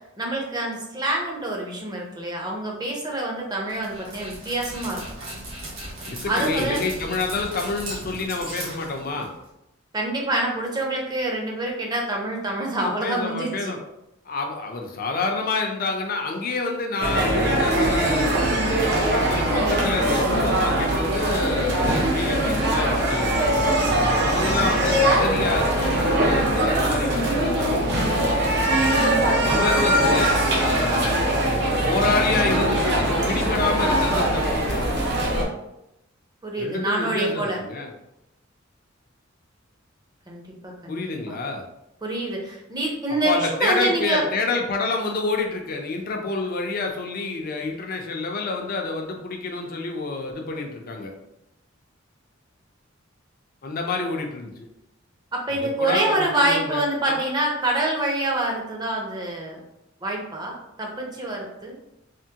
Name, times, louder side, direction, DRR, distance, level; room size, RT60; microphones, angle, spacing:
voice 1, 0.2-5.0 6.3-6.8 9.9-13.7 36.4-37.6 40.3-41.4 42.0-44.3 55.3-59.6 60.0-61.7, right 2 dB, 20° right, -1 dB, 0.6 m, -26 dB
Dog, 3.7-9.5, right 1 dB, 80° right, 1.1 m, -37 dB
voice 2, 6.0-9.3 12.8-13.8 14.3-23.4 24.2-27.9 29.4-31.3 31.8-35.2 36.6-37.9 40.9-41.6 43.2-51.1 53.6-54.7 55.6-57.1, left 3 dB, 45° left, 2 dB, 0.5 m, -28 dB
sound 1, 17.0-35.4, right 1 dB, 55° right, 0.7 m, -21 dB
3.5 x 2.1 x 2.7 m, 0.87 s
head